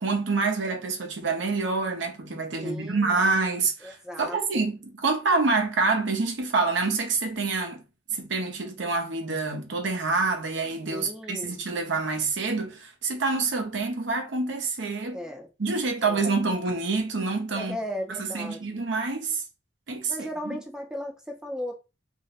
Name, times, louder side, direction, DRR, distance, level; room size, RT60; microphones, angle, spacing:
voice 1, 0.0-7.8 8.1-15.2 15.6-17.8 18.2-19.4 19.9-20.3, right 3 dB, 70° right, 0.8 m, -27 dB
voice 2, 2.6-3.1 3.8-4.7 10.9-11.6 15.1-15.5 16.0-16.2 17.6-18.7 20.1-21.8, equal, 5° right, 0.5 m, -36 dB
2.5 x 2.2 x 4.0 m
head